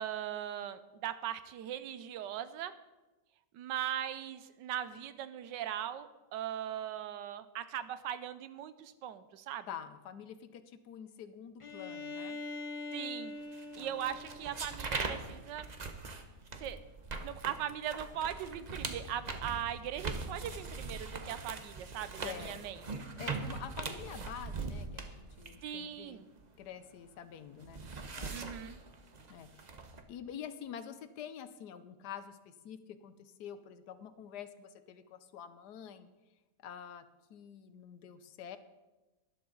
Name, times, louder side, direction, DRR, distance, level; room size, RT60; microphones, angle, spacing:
voice 1, 0.0-2.7 3.5-9.7 12.9-13.4 13.8-15.6 16.6-16.8 17.2-22.8 25.6-26.3 28.3-28.8, right 10 dB, 90° right, 13 dB, 1.3 m, -39 dB
voice 2, 9.7-12.4 13.7-14.0 22.2-26.2 26.6-27.8 28.1-28.4 29.3-29.7 30.1-36.1 36.6-37.0 37.3-38.6, left 8 dB, 70° left, 12 dB, 1.2 m, -47 dB
Bowed string instrument, 11.6-15.4, left 3 dB, 25° left, 0.7 m, -44 dB
sound 1, 13.5-27.0 27.3-30.0, right 4 dB, 35° right, 0.7 m, -41 dB
12.5 x 11.5 x 3.9 m, 1.1 s
omnidirectional pair, 1.9 m